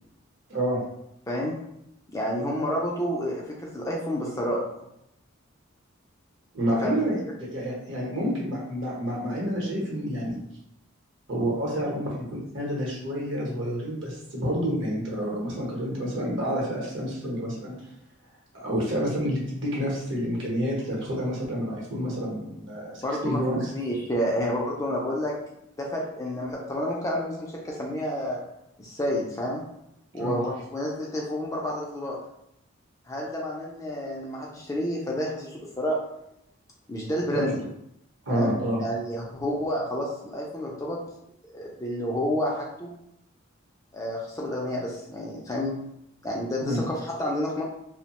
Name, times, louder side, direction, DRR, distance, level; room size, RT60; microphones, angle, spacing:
voice 1, 0.5-0.8 6.5-10.4 11.3-17.7 18.5-23.7 30.1-30.4 37.3-37.4 38.3-38.8 46.6-46.8, equal, 60° right, -4 dB, 0.9 m, -29 dB
voice 2, 2.1-4.6 6.8-7.0 23.0-25.3 25.8-28.4 28.8-29.6 30.1-32.2 33.1-36.0 36.9-37.6 38.3-41.0 41.4-42.9 43.9-45.8 46.2-47.6, equal, 15° left, -3 dB, 0.3 m, -29 dB
2.6 x 2.1 x 2.9 m, 0.79 s
head